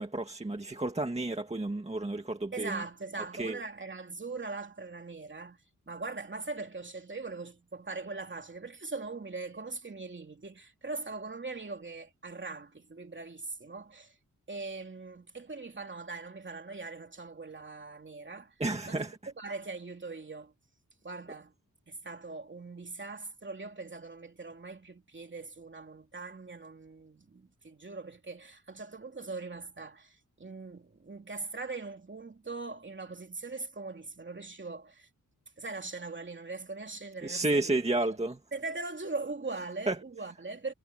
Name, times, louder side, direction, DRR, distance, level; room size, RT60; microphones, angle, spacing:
voice 1, 0.0-2.8 3.4-3.6 18.6-19.2 37.2-38.4 39.9-40.0, right 2 dB, 20° right, 1.9 m, -31 dB
voice 2, 2.5-5.6 5.9-14.1 14.5-18.5 18.9-19.1 19.4-20.5 21.0-21.5 21.9-35.1 35.6-37.8 38.5-40.7, right 3 dB, 35° right, 3.0 m, -41 dB
wide cardioid pair, 140°, 34 cm